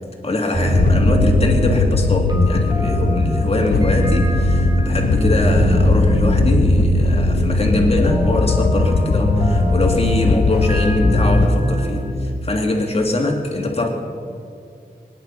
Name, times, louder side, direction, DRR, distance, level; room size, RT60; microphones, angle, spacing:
voice 1, 0.2-13.9, left 2 dB, 35° left, 1 dB, 2.5 m, -22 dB
sound 1, 0.5-12.1, right 1 dB, 25° right, 3.4 m, -20 dB
sound 2, 0.7-11.5, left 5 dB, 75° left, 0.7 m, -20 dB
24.0 x 10.5 x 5.6 m, 2.4 s
wide cardioid pair, 110°, 17 cm